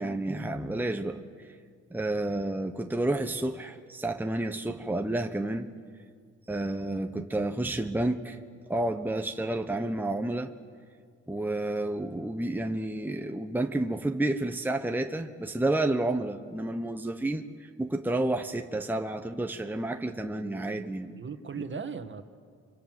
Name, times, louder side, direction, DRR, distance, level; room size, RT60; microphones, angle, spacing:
voice 1, 0.0-1.6 1.9-5.7 6.5-8.4 8.7-10.5 11.3-21.1 21.6-21.7, right 2 dB, 5° right, 5 dB, 1.2 m, -30 dB
voice 2, 20.2-22.2, right 6 dB, 40° right, 9 dB, 1.9 m, -39 dB
30.0 x 25.0 x 7.9 m, 2.1 s
cardioid pair, 90°, 30 cm